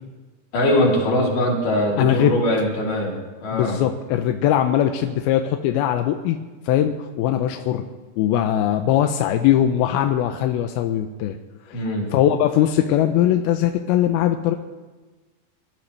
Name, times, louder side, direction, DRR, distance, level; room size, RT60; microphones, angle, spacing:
voice 1, 0.5-3.8 11.7-12.1, left 1 dB, 55° left, -3 dB, 4.5 m, -21 dB
voice 2, 2.0-2.3 3.5-6.4 6.7-7.8 8.2-11.4 11.7-11.8 12.1-14.6, left 11 dB, 80° left, 6 dB, 2.4 m, -20 dB
23.5 x 13.5 x 3.3 m, 1.3 s
omnidirectional pair, 4.8 m